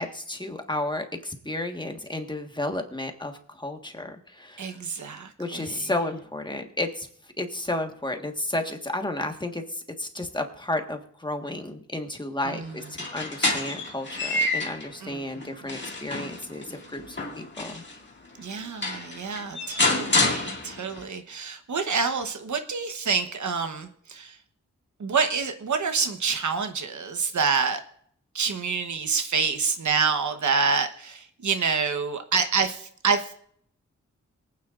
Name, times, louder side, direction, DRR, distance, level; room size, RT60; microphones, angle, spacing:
voice 1, 0.0-3.3 3.6-4.8 5.4-7.1 7.4-17.8, left 1 dB, 15° left, 4 dB, 1.5 m, -32 dB
voice 2, 4.6-5.9 12.4-12.8 15.0-15.4 18.4-24.3 25.0-27.8 28.3-33.3, right 5 dB, 75° right, 7 dB, 1.1 m, -27 dB
sound 1, 12.8-14.9 15.4-18.0 18.5-18.6 18.8-21.0, left 2 dB, 40° left, 2.1 m, -28 dB
24.0 x 9.2 x 2.5 m, 0.64 s
wide cardioid pair, 90°, 30 cm